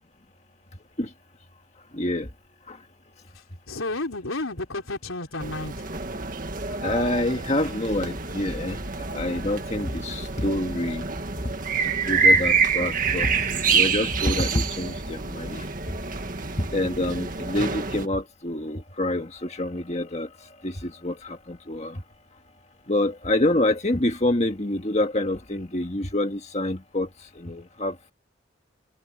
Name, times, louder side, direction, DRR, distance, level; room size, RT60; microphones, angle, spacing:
voice 1, 1.9-2.3 2.7-2.8 6.7-11.1 11.8-15.7 16.6-22.0 22.9-28.1, left 1 dB, 35° left, 1.8 m, -27 dB
voice 2, 3.3-5.9, left 2 dB, 90° left, 4.1 m, -32 dB
sound 1, 5.4-18.1, right 5 dB, 40° right, 1.9 m, -27 dB
head